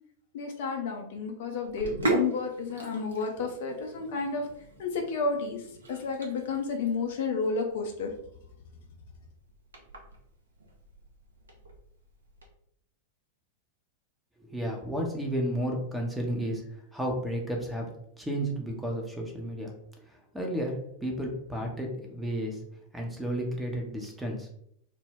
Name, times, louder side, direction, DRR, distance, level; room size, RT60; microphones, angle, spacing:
voice 1, 0.3-4.5 4.8-8.1, left 4 dB, 55° left, 3 dB, 0.4 m, -31 dB
Sink (filling or washing), 1.6-12.5, right 2 dB, 70° right, 0.5 m, -38 dB
voice 2, 14.4-17.9 18.2-19.7 20.1-22.6 22.9-24.5, equal, 5° right, 1 dB, 0.6 m, -32 dB
2.2 x 2.1 x 3.3 m, 0.70 s
figure-of-eight pair, 90°, 0 cm